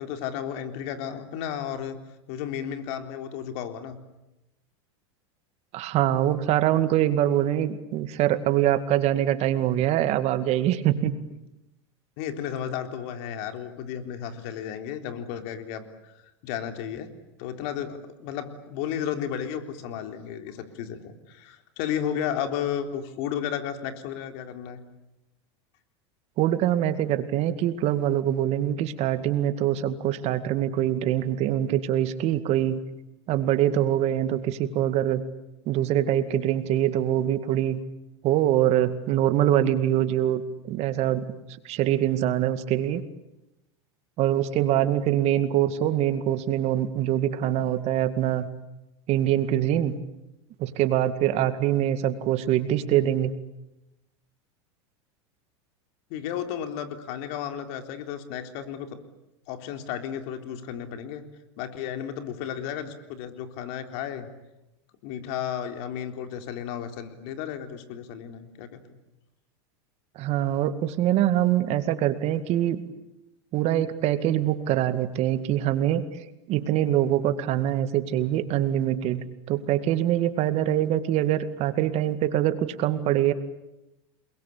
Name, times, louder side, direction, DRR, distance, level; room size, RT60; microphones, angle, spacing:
voice 1, 0.0-2.0 2.3-4.0 12.2-16.1 16.4-17.1 17.4-24.8 56.1-59.0 59.5-61.2 61.6-64.3 65.0-68.8, left 9 dB, 60° left, 7 dB, 3.8 m, -33 dB
voice 2, 5.7-11.1 26.4-32.8 33.3-35.2 35.7-37.8 38.2-41.2 41.6-43.0 44.2-48.5 49.1-50.0 50.6-53.3 70.2-72.8 73.5-76.0 76.5-83.3, right 12 dB, 45° right, 11 dB, 2.1 m, -24 dB
29.0 x 22.0 x 8.6 m, 0.92 s
supercardioid pair, 115°, 15 cm